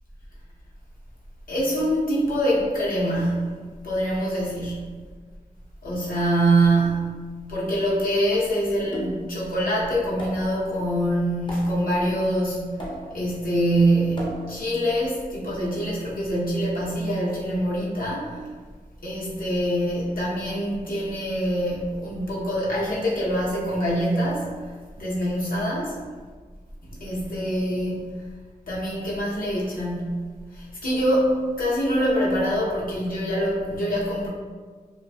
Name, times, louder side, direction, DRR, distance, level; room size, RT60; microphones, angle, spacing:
voice 1, 1.5-3.4 3.8-4.9 5.8-12.8 13.1-18.5 19.0-24.5 25.0-26.0 26.9-28.1 28.7-30.3 30.5-34.3, right 1 dB, 70° left, -7 dB, 0.8 m, -24 dB
low conga wet, 8.9-9.4 10.2-10.6 11.5-11.9 12.8-13.3 14.2-14.7, right 1 dB, 30° left, 0.6 m, -35 dB
2.4 x 2.2 x 2.2 m, 1.5 s
wide cardioid pair, 65°, 15 cm